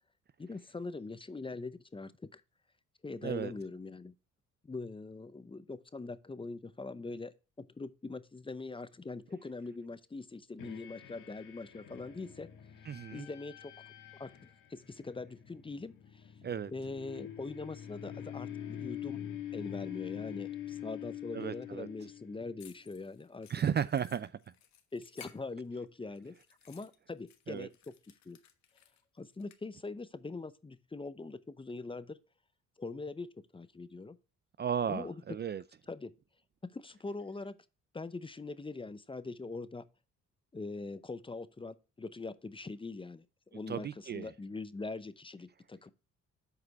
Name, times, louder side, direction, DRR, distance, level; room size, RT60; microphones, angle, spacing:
voice 1, 0.4-2.4 3.0-4.1 4.6-12.5 13.1-13.7 14.2-16.3 16.7-19.2 19.5-23.5 24.9-26.3 26.7-27.9 28.3-28.4 29.2-32.2 32.8-34.2 34.9-35.2 35.9-36.1 36.6-37.6 37.9-39.8 40.5-43.3 43.5-45.9, left 3 dB, 15° left, 0.6 m, -42 dB
sound 1, 10.6-22.6, left 10 dB, 85° left, 1.7 m, -45 dB
voice 2, 12.9-13.3 16.4-16.7 21.3-21.9 23.5-24.3 27.5-27.7 34.6-35.6 43.7-44.3, right 8 dB, 35° right, 0.4 m, -34 dB
sound 2, 22.6-25.9 26.2-29.6, left 9 dB, 65° left, 1.2 m, -58 dB
8.0 x 4.9 x 4.1 m
cardioid pair, 90°, 30 cm